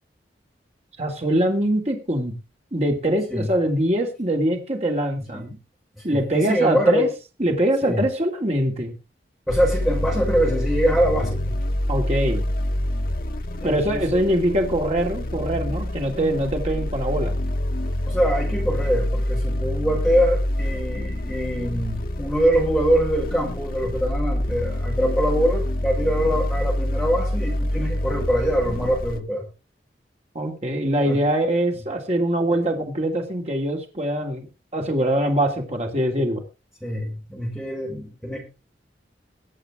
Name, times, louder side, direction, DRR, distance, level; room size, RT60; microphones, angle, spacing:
voice 1, 1.0-2.3 2.7-5.6 6.0-7.1 7.4-8.9 11.9-12.4 13.6-17.3 30.3-34.5 34.7-36.4, right 1 dB, 35° right, 2 dB, 2.9 m, -23 dB
voice 2, 6.0-7.1 7.8-8.0 9.5-11.5 13.6-14.2 18.1-29.5 31.0-31.2 36.8-38.4, equal, ahead, -3 dB, 5.8 m, -24 dB
sound 1, 9.5-29.2, left 1 dB, 55° left, 1.0 m, -26 dB
22.5 x 8.2 x 3.7 m, 0.30 s
head